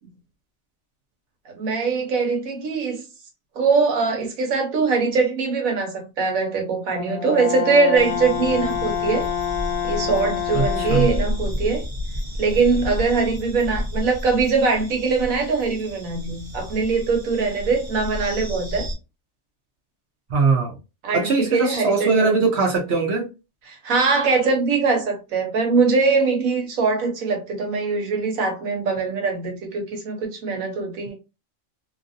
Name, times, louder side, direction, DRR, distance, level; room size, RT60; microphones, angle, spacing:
voice 1, 1.5-3.0 3.5-9.3 9.8-11.8 12.4-18.9 21.0-22.4 23.7-31.1, right 4 dB, 90° right, 1.4 m, -22 dB
Brass instrument, 6.9-11.3, left 9 dB, 80° left, 1.0 m, -27 dB
sound 1, 7.9-18.9, left 1 dB, 35° right, 0.7 m, -31 dB
voice 2, 10.5-11.1 20.3-20.7 21.1-23.3, right 4 dB, 60° right, 0.9 m, -21 dB
3.0 x 2.6 x 2.5 m
omnidirectional pair, 1.4 m